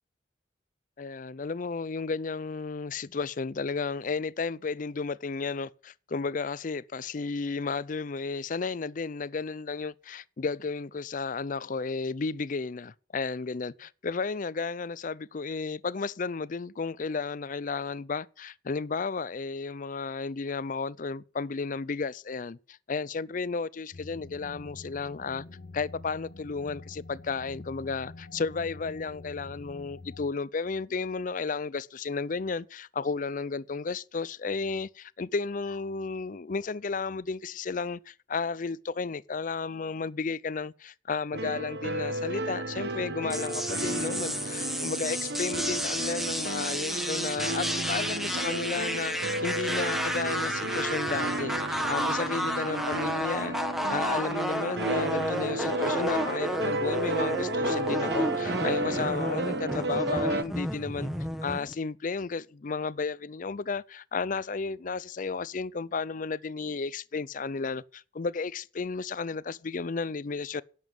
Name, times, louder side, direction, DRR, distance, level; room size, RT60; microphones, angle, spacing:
voice 1, 1.0-25.4 25.7-49.1 49.4-53.6 53.9-61.1 61.4-70.6, left 4 dB, 45° left, 0.5 m, -33 dB
sound 1, 23.9-30.3, left 2 dB, 65° left, 1.2 m, -46 dB
sound 2, 41.3-60.4, right 2 dB, 65° right, 1.1 m, -33 dB
sound 3, 43.3-61.7, equal, ahead, 1.3 m, -32 dB
11.0 x 7.3 x 9.2 m
head